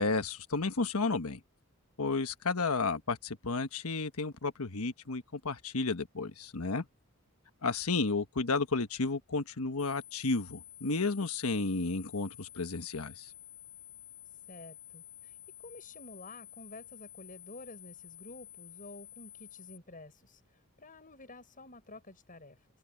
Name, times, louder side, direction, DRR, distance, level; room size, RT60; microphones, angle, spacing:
voice 1, 0.0-1.4 2.0-6.9 7.6-13.3, left 3 dB, 75° left, 1.3 m, -32 dB
sound 1, 9.8-19.8, left 11 dB, 5° left, 1.6 m, -51 dB
voice 2, 14.5-15.4 15.6-22.7, left 2 dB, 40° left, 6.9 m, -51 dB
head